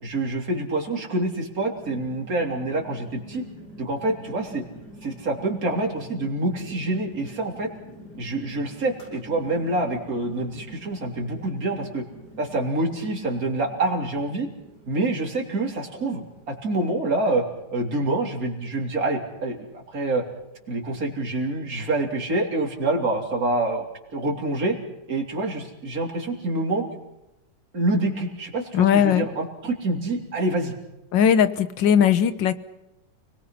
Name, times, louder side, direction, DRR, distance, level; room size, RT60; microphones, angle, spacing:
voice 1, 0.0-3.4 3.8-4.6 5.0-7.7 8.2-12.0 12.4-14.5 14.9-17.4 17.7-20.2 20.7-23.8 24.1-24.8 25.1-26.8 27.7-30.7, right 2 dB, 50° right, 0 dB, 3.9 m, -26 dB
sound 1, 1.7-21.5, equal, 60° left, 8.7 m, -47 dB
voice 2, 28.7-29.3 31.1-32.6, left 8 dB, 80° left, 13 dB, 1.8 m, -19 dB
30.0 x 20.0 x 5.9 m, 0.92 s
omnidirectional pair, 2.0 m